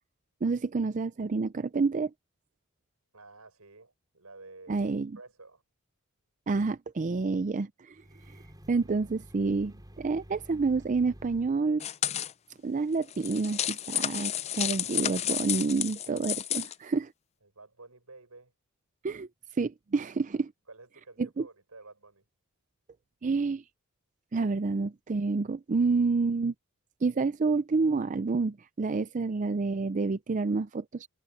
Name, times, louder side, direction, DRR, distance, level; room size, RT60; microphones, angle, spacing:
voice 1, 0.4-2.1 4.7-5.1 6.5-8.0 8.7-11.8 12.6-17.1 19.0-19.3 19.6-20.5 21.4-21.5 23.2-23.6 24.3-26.5 27.0-31.1, right 4 dB, 35° right, 0.4 m, -28 dB
voice 2, 3.1-4.9 5.1-5.6 17.4-18.5 20.7-22.2, right 3 dB, 80° right, 6.3 m, -51 dB
sound 1, 7.9-11.6, equal, 20° right, 4.9 m, -50 dB
sound 2, 11.8-12.3 13.0-16.7, left 11 dB, 30° left, 0.4 m, -31 dB
head